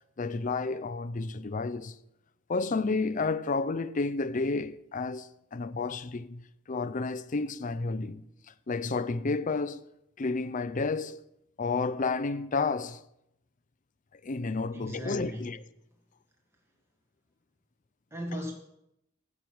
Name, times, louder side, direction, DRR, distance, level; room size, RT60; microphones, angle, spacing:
voice 1, 0.2-2.0 2.5-8.2 8.7-9.9 10.2-11.2 11.6-13.0 14.1-15.6, left 3 dB, 40° left, 0.5 m, -31 dB
voice 2, 14.7-15.6 18.1-18.5, equal, 15° right, 1.7 m, -37 dB
16.0 x 6.2 x 6.3 m
head